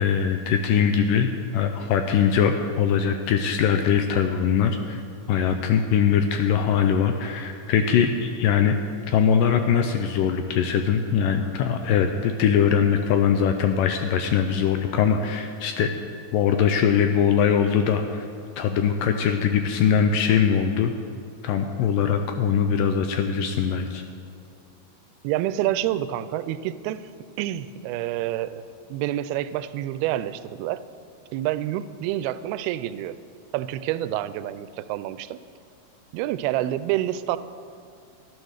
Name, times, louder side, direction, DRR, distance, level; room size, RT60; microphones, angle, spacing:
voice 1, 0.0-5.0 5.3-8.7 9.1-15.9 16.3-18.3 18.6-20.9 21.4-24.0, left 7 dB, 80° left, 6 dB, 2.0 m, -22 dB
voice 2, 25.2-27.0 27.4-28.6 28.9-30.8 31.3-33.2 33.5-35.4 36.1-37.4, right 13 dB, 85° right, 14 dB, 2.5 m, -28 dB
13.5 x 11.0 x 6.5 m, 2.3 s
omnidirectional pair, 4.4 m